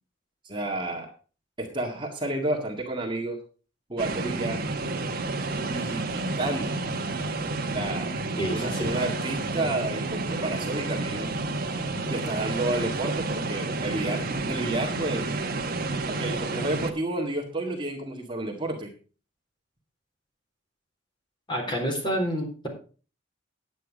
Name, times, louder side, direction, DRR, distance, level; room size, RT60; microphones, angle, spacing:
voice 1, 0.4-1.1 1.6-3.4 3.9-4.7 5.7-6.8 7.7-8.1 8.5-11.3 12.0-15.3 16.1-18.9, right 2 dB, 25° right, 1 dB, 2.0 m, -31 dB
sound 1, 4.0-16.9, right 2 dB, 50° right, 1.6 m, -30 dB
voice 2, 8.4-8.9 21.5-22.7, equal, 25° left, 1 dB, 3.9 m, -29 dB
10.5 x 9.2 x 5.1 m, 0.37 s
head